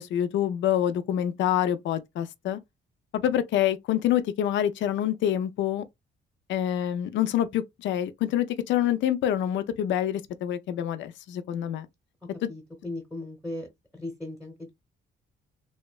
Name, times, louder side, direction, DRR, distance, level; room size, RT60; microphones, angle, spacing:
voice 1, 0.0-2.6 3.1-5.8 6.5-11.9 12.4-12.5, left 11 dB, 70° left, 0.4 m, -26 dB
voice 2, 12.5-13.7 13.9-14.7, left 2 dB, ahead, 0.8 m, -37 dB
2.7 x 2.1 x 2.2 m
cardioid pair, 90°, 20 cm